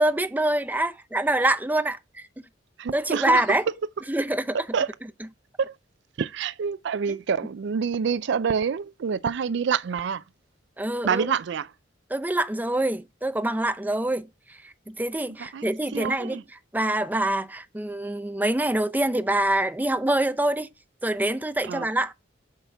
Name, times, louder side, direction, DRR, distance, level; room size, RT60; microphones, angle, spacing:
voice 1, 0.0-2.3 2.9-3.6 4.1-4.6 7.1-7.2 10.8-11.3 12.1-16.4 16.7-20.7 21.0-22.1, right 1 dB, 10° right, 0.6 m, -25 dB
voice 2, 2.8-3.4 4.7-4.9 5.6-5.8 6.2-10.2 11.0-11.7 15.5-16.4 21.6-21.9, right 6 dB, 65° right, 0.4 m, -27 dB
8.1 x 5.7 x 3.4 m
head